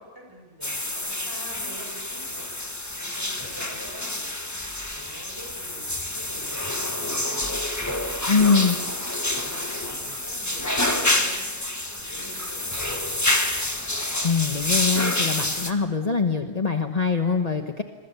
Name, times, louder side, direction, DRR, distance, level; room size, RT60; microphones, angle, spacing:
voice 1, 0.0-2.6 2.9-4.3 4.9-7.5 8.1-8.8 9.1-11.7 11.9-13.4, equal, 20° right, 0 dB, 8.0 m, -45 dB
sound 1, 0.6-15.7, left 1 dB, 15° left, 1.5 m, -28 dB
voice 2, 8.3-8.8 14.2-17.8, left 5 dB, 40° left, 5 dB, 1.2 m, -23 dB
27.0 x 23.0 x 6.9 m, 1.4 s
omnidirectional pair, 1.1 m